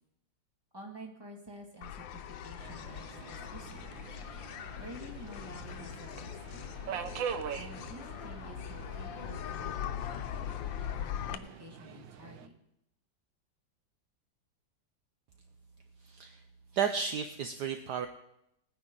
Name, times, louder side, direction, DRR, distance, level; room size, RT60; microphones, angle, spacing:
voice 1, 0.7-4.0 4.8-7.1 7.5-9.9 11.0-12.5, right 1 dB, 10° right, 0 dB, 2.0 m, -50 dB
sound 1, 1.8-11.4, left 9 dB, 80° left, 1.4 m, -41 dB
Subway metro underground, 2.6-12.5, right 7 dB, 85° right, 1.6 m, -44 dB
voice 2, 16.0-16.4 16.7-18.1, right 7 dB, 70° right, 7 dB, 1.2 m, -33 dB
20.0 x 9.7 x 3.8 m, 0.80 s
omnidirectional pair, 2.1 m